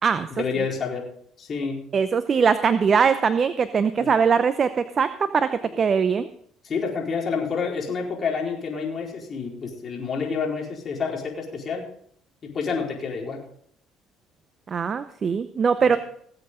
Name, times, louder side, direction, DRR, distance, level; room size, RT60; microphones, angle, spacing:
voice 1, 0.3-1.1 1.4-1.9 4.0-4.1 6.6-11.8 12.4-13.4 15.8-16.0, left 5 dB, 45° left, -1 dB, 4.5 m, -29 dB
voice 2, 1.9-6.3 14.7-16.0, right 6 dB, 45° right, 12 dB, 0.7 m, -21 dB
19.5 x 8.0 x 3.8 m, 0.65 s
supercardioid pair, 70°, 0 cm